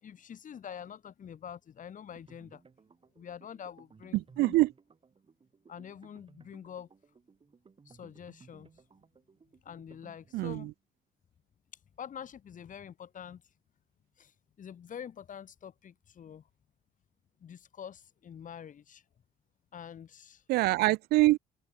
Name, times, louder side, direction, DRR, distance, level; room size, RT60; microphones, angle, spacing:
voice 1, 0.0-2.6 3.2-4.5 5.7-6.9 7.9-8.7 9.6-10.7 12.0-13.4 14.2-16.4 17.4-19.0 19.7-20.4, left 8 dB, 50° left, 7.2 m, -46 dB
sound 1, 2.1-10.7, right 5 dB, 30° right, 7.4 m, -60 dB
voice 2, 4.1-4.7 10.3-10.7 20.5-21.4, right 19 dB, 75° right, 0.4 m, -25 dB
open air
supercardioid pair, 80°, 17 cm